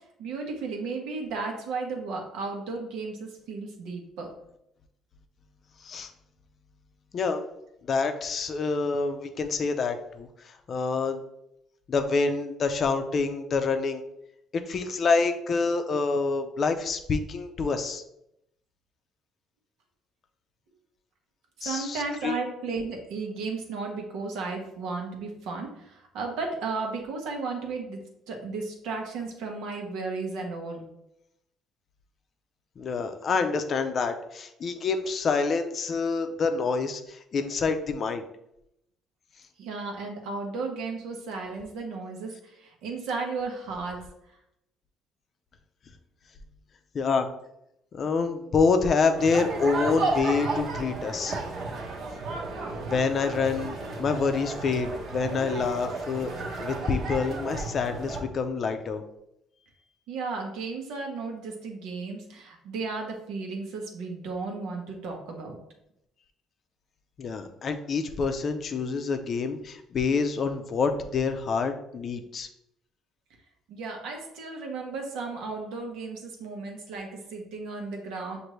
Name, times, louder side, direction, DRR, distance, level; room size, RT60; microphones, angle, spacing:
voice 1, 0.2-4.3 21.6-28.0 28.3-30.8 39.6-42.3 42.6-44.0 60.1-65.6 73.7-78.4, right 4 dB, 85° right, 2 dB, 1.0 m, -34 dB
voice 2, 7.9-11.2 11.9-14.0 14.5-18.0 21.6-22.4 32.8-38.2 46.9-47.3 47.9-51.4 52.9-59.0 67.2-72.5, left 4 dB, 45° left, 7 dB, 0.5 m, -27 dB
sound 1, 49.2-58.2, right 3 dB, 60° right, 1.0 m, -33 dB
6.4 x 2.6 x 3.1 m, 0.80 s
cardioid pair, 120°, 0 cm